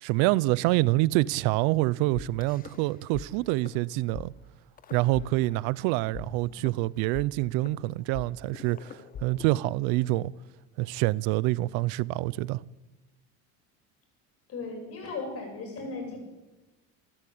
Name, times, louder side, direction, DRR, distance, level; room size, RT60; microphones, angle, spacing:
voice 1, 0.0-4.3 4.9-10.3 10.8-12.6, right 19 dB, 80° right, 0.7 m, -26 dB
sound 1, 2.2-3.3 3.5-3.8 4.1-4.3 4.8-5.8 6.1-10.2, left 7 dB, 25° left, 0.8 m, -43 dB
voice 2, 14.5-16.2, left 3 dB, 40° left, 7.9 m, -36 dB
27.5 x 12.0 x 8.7 m
cardioid pair, 160°, 36 cm